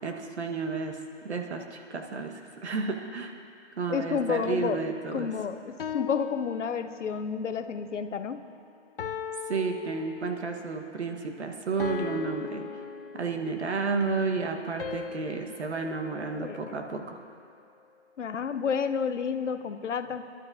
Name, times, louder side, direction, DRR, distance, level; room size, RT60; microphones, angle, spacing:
voice 1, 0.0-1.0 1.3-3.3 3.8-5.3 9.5-12.7 13.2-17.2, right 4 dB, 65° right, 4 dB, 1.4 m, -31 dB
voice 2, 3.9-4.8 5.1-8.4 16.4-16.8 18.2-20.3, left 6 dB, 85° left, 10 dB, 0.8 m, -30 dB
sound 1, 5.8-7.3 9.0-10.6 11.8-13.7 14.8-17.1, left 7 dB, 50° left, 0.5 m, -39 dB
22.5 x 12.0 x 2.7 m, 2.6 s
hypercardioid pair, 165°, 35 cm